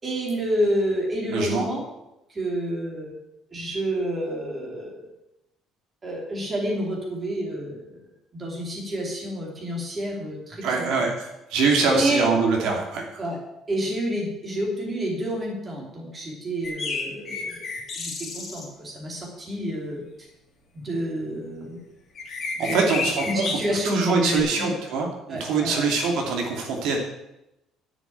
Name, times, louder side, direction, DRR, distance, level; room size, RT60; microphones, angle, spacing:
voice 1, 0.0-1.8 2.3-3.1 3.5-5.1 6.0-8.0 8.3-10.7 11.9-12.2 13.2-13.4 13.7-17.7 17.9-20.0 20.7-21.8 22.6-24.7 25.3-25.8, equal, 20° right, -1 dB, 3.0 m, -29 dB
voice 2, 1.3-1.7 10.6-13.2 22.6-27.0, right 4 dB, 65° right, 1 dB, 2.4 m, -24 dB
sound 1, 16.6-18.6 22.1-23.6 24.2-24.4, left 4 dB, 25° left, 3.2 m, -31 dB
10.5 x 6.9 x 8.6 m, 0.89 s
cardioid pair, 180°, 0 cm